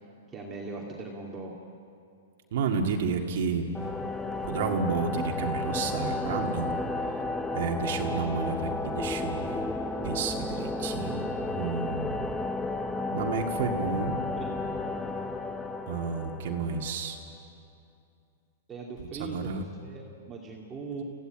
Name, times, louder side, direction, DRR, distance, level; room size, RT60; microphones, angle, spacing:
voice 1, 0.3-1.6 14.4-14.6 18.7-21.0, right 3 dB, 15° right, -2 dB, 2.4 m, -40 dB
voice 2, 2.5-3.7 4.4-6.7 7.5-9.7 10.0-12.4 13.1-14.2 15.9-17.2 19.2-19.6, right 5 dB, 60° right, 2 dB, 2.1 m, -31 dB
sound 1, 3.7-17.3, left 2 dB, 5° left, 0.8 m, -33 dB
25.0 x 15.5 x 9.0 m, 2.4 s
hypercardioid pair, 150°, 0 cm